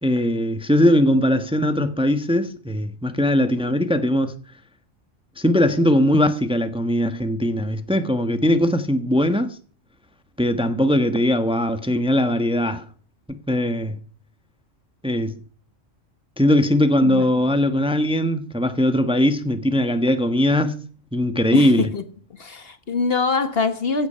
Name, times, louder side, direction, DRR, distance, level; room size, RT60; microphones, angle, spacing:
voice 1, 0.0-4.3 5.4-9.6 10.4-12.9 13.3-14.0 15.0-15.4 16.4-20.8 21.1-21.9, left 1 dB, 5° right, 1.1 m, -20 dB
voice 2, 21.5-22.1 22.4-24.1, left 4 dB, 55° left, 1.6 m, -23 dB
15.5 x 10.5 x 5.6 m
omnidirectional pair, 1.3 m